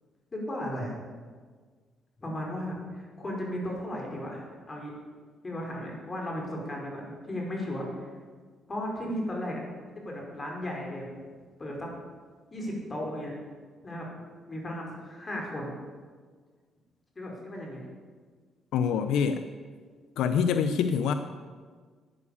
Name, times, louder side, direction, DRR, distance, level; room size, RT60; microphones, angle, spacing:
voice 1, 0.3-0.9 2.2-4.9 5.4-8.1 8.7-9.6 10.1-11.1 11.6-11.9 12.5-13.3 13.8-14.1 14.5-15.7 17.2-17.8, left 1 dB, 30° left, -1 dB, 5.1 m, -35 dB
voice 2, 18.7-19.4 20.2-21.1, left 7 dB, 85° left, 10 dB, 0.7 m, -25 dB
12.0 x 9.7 x 8.5 m, 1.5 s
cardioid pair, 90°, 0 cm